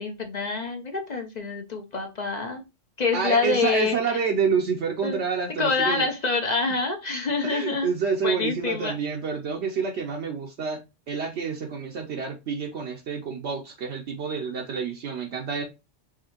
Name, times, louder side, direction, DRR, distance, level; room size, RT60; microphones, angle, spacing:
voice 1, 0.0-2.6 3.0-4.0 5.0-5.2 5.6-7.9 8.2-9.0, left 4 dB, 45° left, 0.6 m, -26 dB
voice 2, 3.1-6.0 7.4-10.8 11.1-15.6, right 6 dB, 70° right, 0.9 m, -28 dB
4.9 x 2.7 x 2.9 m
omnidirectional pair, 1.2 m